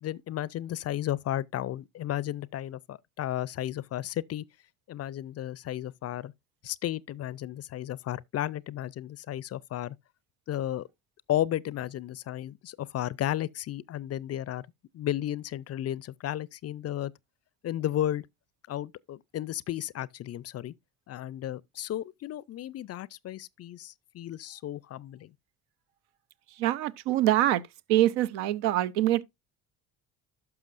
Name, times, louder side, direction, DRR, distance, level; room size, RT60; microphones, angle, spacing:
voice 1, 0.0-4.4 4.9-6.3 6.6-10.0 10.5-10.9 11.3-14.7 14.9-17.1 17.6-18.3 18.7-20.7 21.1-25.3, left 12 dB, 40° left, 0.5 m, -33 dB
voice 2, 26.6-27.6 27.9-29.2, right 13 dB, 75° right, 0.7 m, -24 dB
12.0 x 5.9 x 2.5 m
hypercardioid pair, 60°, 40 cm